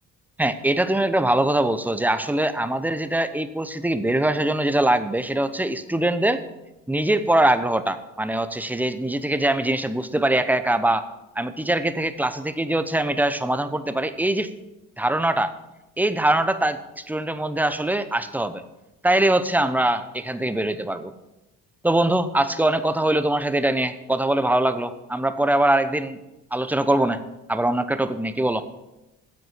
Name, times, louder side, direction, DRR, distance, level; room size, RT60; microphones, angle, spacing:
voice 1, 0.4-6.4 6.9-11.1 11.4-14.5 15.0-15.5 16.0-18.6 19.0-21.1 21.8-26.2 26.5-27.2 27.5-28.7, right 1 dB, 5° right, 11 dB, 0.8 m, -22 dB
9.8 x 7.7 x 5.8 m, 0.97 s
hypercardioid pair, 55°, 41 cm